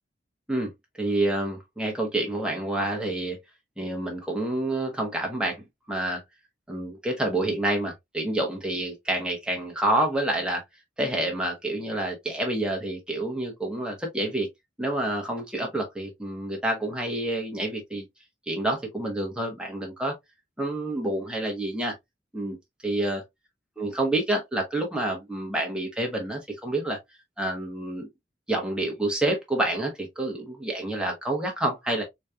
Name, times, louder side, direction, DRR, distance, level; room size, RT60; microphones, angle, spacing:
voice 1, 1.0-3.4 3.8-5.6 5.9-6.2 6.7-10.6 11.0-14.5 14.8-18.0 18.5-20.1 20.6-21.9 22.3-22.6 22.8-23.2 23.8-27.0 27.4-28.1 28.5-32.0, right 1 dB, 5° right, 1.2 m, -28 dB
4.1 x 3.1 x 2.3 m
head